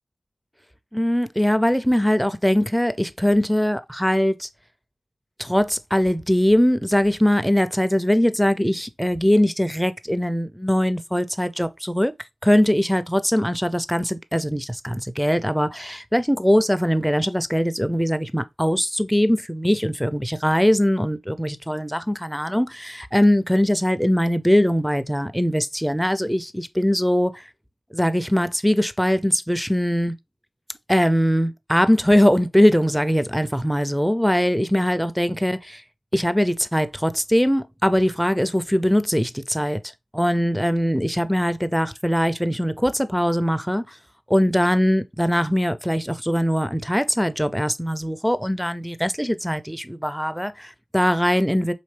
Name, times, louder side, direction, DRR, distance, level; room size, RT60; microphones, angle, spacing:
voice 1, 0.9-4.5 5.4-12.1 12.4-27.4 27.9-30.2 30.9-35.8 36.1-39.8 40.1-44.0 44.3-51.7, equal, ahead, 0.5 m, -21 dB
4.3 x 3.1 x 3.3 m
cardioid pair, 60°, 0 cm